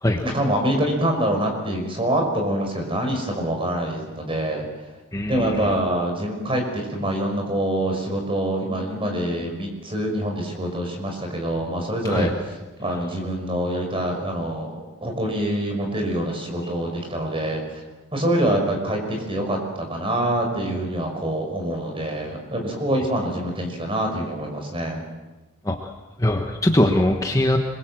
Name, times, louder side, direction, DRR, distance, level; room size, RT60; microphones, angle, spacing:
voice 1, 0.2-4.7 5.3-12.3 12.8-17.8 18.1-25.0, right 1 dB, 25° right, 3 dB, 5.6 m, -25 dB
voice 2, 5.1-5.7 12.0-12.3 25.6-25.9 26.2-27.6, left 1 dB, 15° left, 3 dB, 1.3 m, -21 dB
26.5 x 22.0 x 7.7 m, 1.1 s
head